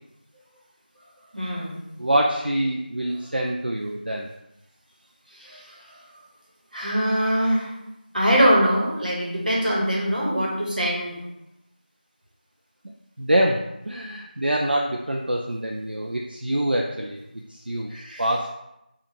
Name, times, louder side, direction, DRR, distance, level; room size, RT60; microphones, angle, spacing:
voice 1, 1.3-1.8 5.3-5.8 6.7-7.7 8.1-11.2 17.9-18.2, equal, 60° right, -4 dB, 1.1 m, -23 dB
voice 2, 2.0-4.3 13.2-17.2 17.5-17.9 18.2-18.5, right 1 dB, 80° right, 0 dB, 0.4 m, -25 dB
4.3 x 2.4 x 2.8 m, 0.88 s
figure-of-eight pair, 180°, 5 cm